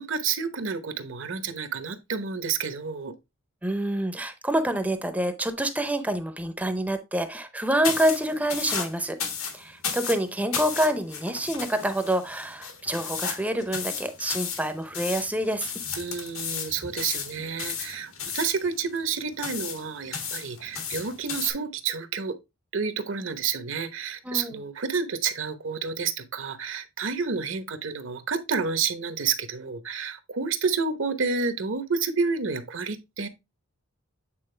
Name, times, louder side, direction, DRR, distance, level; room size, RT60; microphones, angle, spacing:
voice 1, 0.0-3.2 16.0-22.4 22.7-33.3, right 5 dB, 65° right, 0.9 m, -29 dB
voice 2, 3.6-9.2 9.5-15.7 24.3-24.6, right 1 dB, 5° right, 0.6 m, -27 dB
sound 1, 7.8-21.5, left 6 dB, 80° left, 1.7 m, -34 dB
8.7 x 4.2 x 3.2 m
head